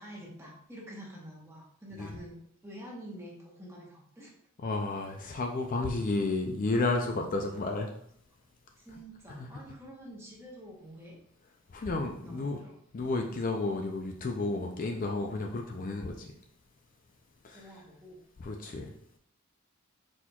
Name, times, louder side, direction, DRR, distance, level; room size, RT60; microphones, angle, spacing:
voice 1, 0.0-2.4 2.6-4.3 7.1-7.6 8.8-11.2 12.2-12.8 14.6-14.8 17.5-18.2, equal, 15° right, -3 dB, 1.0 m, -47 dB
voice 2, 4.6-7.9 9.4-9.5 11.7-12.6 12.9-16.3 17.4-17.6 18.4-18.9, left 3 dB, 40° left, 3 dB, 0.4 m, -32 dB
4.3 x 4.2 x 2.3 m, 0.66 s
head